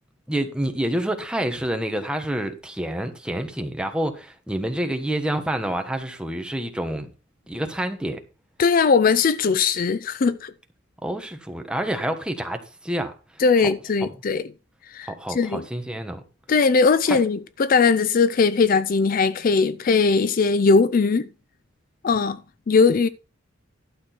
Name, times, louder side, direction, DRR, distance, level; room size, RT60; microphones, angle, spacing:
voice 1, 0.3-7.1 7.5-8.2 11.0-13.1 13.6-13.7 15.1-16.2 17.1-17.2, right 1 dB, 5° right, 1.3 m, -28 dB
voice 2, 8.6-10.5 13.4-14.4 14.9-15.6 16.5-21.3 22.0-22.4 22.7-23.1, left 4 dB, 45° left, 0.4 m, -19 dB
12.0 x 6.2 x 4.4 m
head